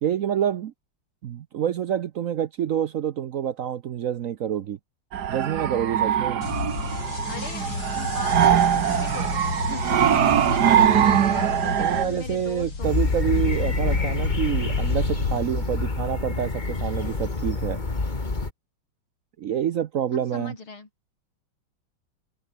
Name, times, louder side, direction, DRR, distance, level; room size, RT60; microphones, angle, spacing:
voice 1, 0.0-0.7 1.2-4.8 5.3-6.4 11.8-17.8 19.4-20.5, right 9 dB, 75° right, 0.7 m, -27 dB
sound 1, 5.1-12.0, right 9 dB, 55° right, 1.6 m, -22 dB
sound 2, 6.4-15.4, left 4 dB, 60° left, 4.5 m, -30 dB
voice 2, 7.3-12.9 20.1-20.9, left 4 dB, 80° left, 5.2 m, -39 dB
Blackbird in town, 12.8-18.5, left 3 dB, 20° left, 2.1 m, -27 dB
omnidirectional pair, 2.3 m